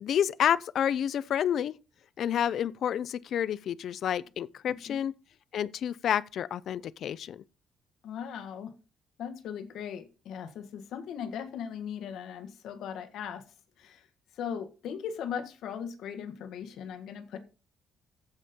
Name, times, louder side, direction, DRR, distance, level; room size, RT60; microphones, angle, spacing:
voice 1, 0.0-1.7 2.2-5.1 5.5-7.4, left 9 dB, 55° left, 0.5 m, -29 dB
voice 2, 4.7-5.0 8.0-8.7 9.2-13.4 13.8-14.1 14.3-17.4, left 8 dB, 75° left, 1.6 m, -38 dB
15.0 x 5.3 x 4.3 m
cardioid pair, 170°, 0 cm